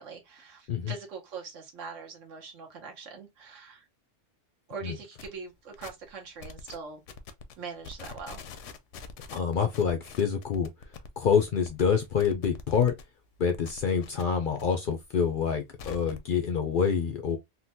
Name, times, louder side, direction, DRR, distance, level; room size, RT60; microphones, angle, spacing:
voice 1, 0.0-3.9 4.7-7.0 7.6-8.4, right 5 dB, 80° right, 1.2 m, -42 dB
sound 1, 5.2-5.3 5.7-6.1 6.4-6.8 7.1-7.5 7.8-13.0 13.3-14.6 14.9-16.3, left 5 dB, 80° left, 0.9 m, -45 dB
voice 2, 9.3-10.7 11.2-12.9 13.4-17.4, left 6 dB, 60° left, 0.5 m, -26 dB
3.7 x 2.2 x 2.7 m
omnidirectional pair, 1.3 m